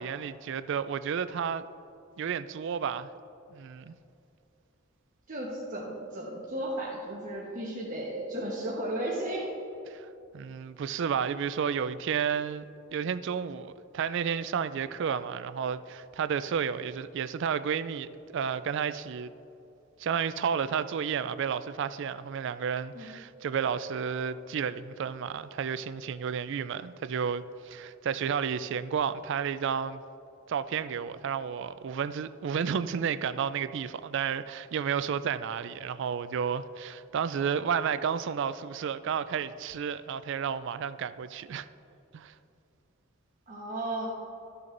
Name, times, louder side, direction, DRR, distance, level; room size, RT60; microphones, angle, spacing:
voice 1, 0.0-1.6 2.2-3.1 3.5-3.9 9.9-10.1 10.3-12.6 12.9-19.3 20.0-30.0 30.5-41.7 42.1-42.3, right 7 dB, 60° right, 0.3 m, -31 dB
voice 2, 5.3-9.5 22.9-23.1 43.5-44.1, right 1 dB, 40° right, 1.1 m, -34 dB
13.0 x 6.9 x 2.6 m
head